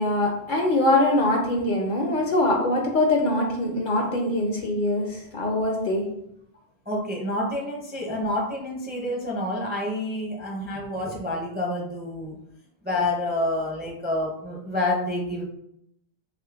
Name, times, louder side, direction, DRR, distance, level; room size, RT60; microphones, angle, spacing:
voice 1, 0.0-6.1, left 1 dB, 60° left, 1 dB, 0.6 m, -23 dB
voice 2, 6.9-12.4 12.8-15.4, left 1 dB, 15° right, -2 dB, 0.4 m, -28 dB
3.7 x 3.1 x 2.3 m, 0.75 s
omnidirectional pair, 1.1 m